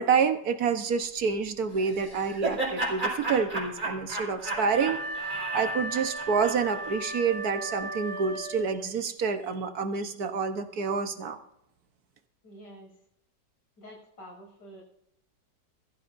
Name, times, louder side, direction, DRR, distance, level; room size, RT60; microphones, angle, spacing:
voice 1, 0.0-11.4, right 5 dB, 60° right, 8 dB, 1.6 m, -28 dB
Laughter, 1.8-7.0, right 2 dB, 25° right, 5.3 m, -33 dB
Wind instrument woodwind instrument, 4.4-8.9, right 1 dB, 55° left, 8.0 m, -36 dB
voice 2, 12.4-13.0 13.8-14.8, equal, 85° left, -1 dB, 7.4 m, -48 dB
21.5 x 14.5 x 2.7 m, 0.76 s
omnidirectional pair, 1.9 m